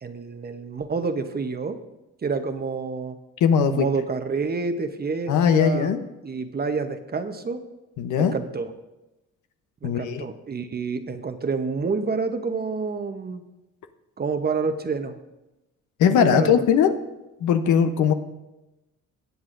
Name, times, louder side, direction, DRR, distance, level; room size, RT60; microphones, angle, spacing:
voice 1, 0.0-1.8 2.2-3.2 3.7-5.9 6.2-7.6 8.2-8.7 9.8-13.4 14.2-15.2 16.1-16.5, right 4 dB, 30° right, 8 dB, 0.9 m, -28 dB
voice 2, 3.4-3.9 5.3-6.0 8.0-8.3 9.8-10.3 16.0-16.9 17.4-18.1, left 7 dB, 80° left, 8 dB, 0.9 m, -19 dB
20.0 x 8.0 x 2.6 m, 0.99 s
cardioid pair, 90°, 30 cm